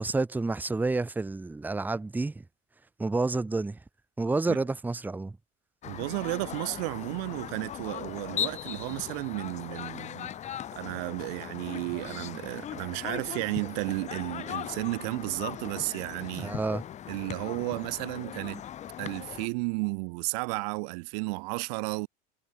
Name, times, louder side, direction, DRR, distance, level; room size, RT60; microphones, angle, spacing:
voice 1, 0.0-2.4 3.0-3.8 4.2-5.4 16.4-16.8, right 3 dB, 10° right, 0.8 m, -29 dB
sound 1, 5.8-19.5, left 10 dB, 35° left, 0.8 m, -39 dB
voice 2, 5.8-16.5 17.1-18.6 19.0-22.1, right 33 dB, 80° right, 0.9 m, -33 dB
supercardioid pair, 120°, 21 cm